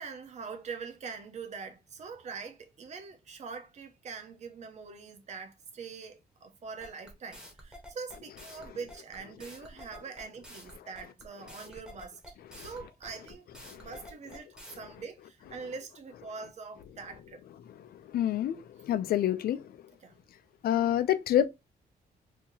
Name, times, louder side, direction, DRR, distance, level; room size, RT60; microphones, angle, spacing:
voice 1, 0.0-13.5 13.7-14.5 14.8-17.4 20.0-20.2, right 5 dB, 45° right, 0.8 m, -43 dB
sound 1, 6.8-14.8, equal, 5° right, 1.0 m, -49 dB
voice 2, 17.9-19.6 20.6-21.5, left 11 dB, 65° left, 0.4 m, -27 dB
2.9 x 2.7 x 3.7 m
wide cardioid pair, 165°, 17 cm